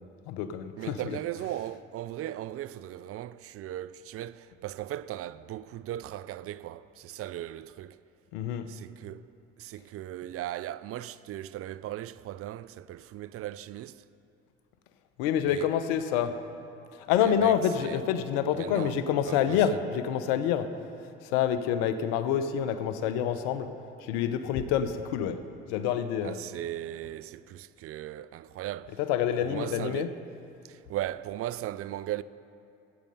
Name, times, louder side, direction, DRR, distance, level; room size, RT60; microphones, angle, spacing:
voice 1, 0.3-1.2 8.3-8.7 15.2-16.4 16.9-20.8 21.2-23.7 24.0-25.4 25.7-26.4 29.0-30.1, left 9 dB, 80° left, 0.7 m, -27 dB
voice 2, 0.8-8.0 8.7-9.2 9.6-14.0 15.5-15.7 17.2-18.0 18.5-19.0 19.2-19.8 26.2-29.0 29.4-30.1 30.6-32.2, right 13 dB, 50° right, 0.4 m, -38 dB
14.5 x 8.5 x 5.5 m
hypercardioid pair, 60°, 30 cm